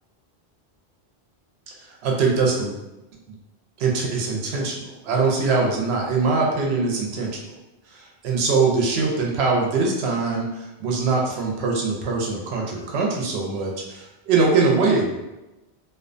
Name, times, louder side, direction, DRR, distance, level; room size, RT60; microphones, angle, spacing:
voice 1, 2.0-2.8 3.8-7.5 7.9-15.2, right 4 dB, 75° right, -1 dB, 0.8 m, -22 dB
2.4 x 2.1 x 2.5 m, 1.0 s
omnidirectional pair, 1.1 m